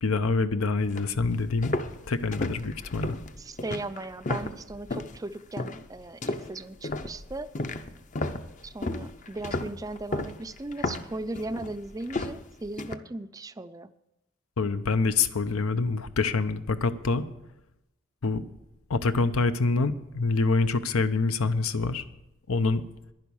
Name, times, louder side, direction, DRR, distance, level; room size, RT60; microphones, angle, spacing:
voice 1, 0.0-1.8 2.1-3.2 14.6-17.2 18.2-18.4 18.9-22.0 22.5-22.8, left 4 dB, 90° left, 11 dB, 0.7 m, -26 dB
sound 1, 0.8-5.2 5.6-5.9 6.2-13.0, left 2 dB, 35° left, 0.6 m, -34 dB
voice 2, 3.4-7.5 8.6-13.9, right 2 dB, 15° right, 13 dB, 0.4 m, -37 dB
11.0 x 10.5 x 7.1 m, 0.92 s
head